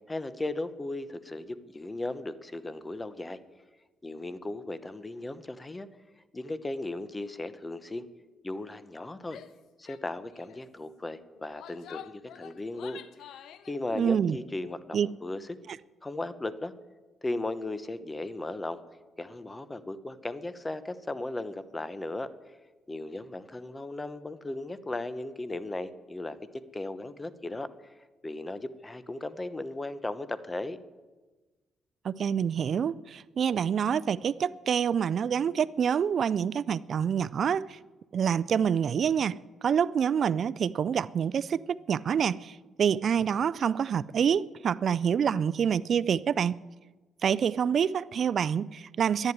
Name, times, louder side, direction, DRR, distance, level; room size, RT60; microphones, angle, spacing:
voice 1, 0.1-3.4 4.0-5.9 6.3-8.1 8.4-9.4 9.8-13.0 13.7-15.6 16.0-16.7 17.2-18.8 19.2-22.3 22.9-27.9 28.2-30.8, left 2 dB, 20° left, 1.0 m, -36 dB
Female speech woman speaking / Yell, 9.2-9.6 9.9-10.0 10.3-10.6 11.3-13.7, left 10 dB, 80° left, 0.7 m, -48 dB
voice 2, 13.9-14.4 14.9-15.1 32.0-37.8 38.1-46.6 47.2-49.3, right 7 dB, 55° right, 0.4 m, -27 dB
11.5 x 10.5 x 9.6 m
cardioid pair, 90°, 0 cm